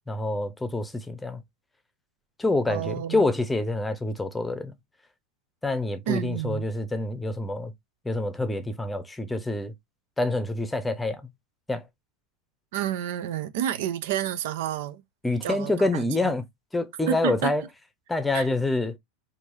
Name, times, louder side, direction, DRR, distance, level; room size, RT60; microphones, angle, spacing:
voice 1, 0.1-1.4 2.4-4.7 5.6-7.7 8.0-9.7 10.2-11.2 11.7-11.8 15.2-16.4 16.7-17.6 18.1-19.0, left 2 dB, 10° left, 0.8 m, -27 dB
voice 2, 2.7-3.3 6.1-6.7 12.7-15.0 15.4-16.3 17.1-17.5 18.3-18.5, right 11 dB, 65° right, 0.6 m, -30 dB
4.6 x 2.8 x 2.7 m
hypercardioid pair, 90°, 0 cm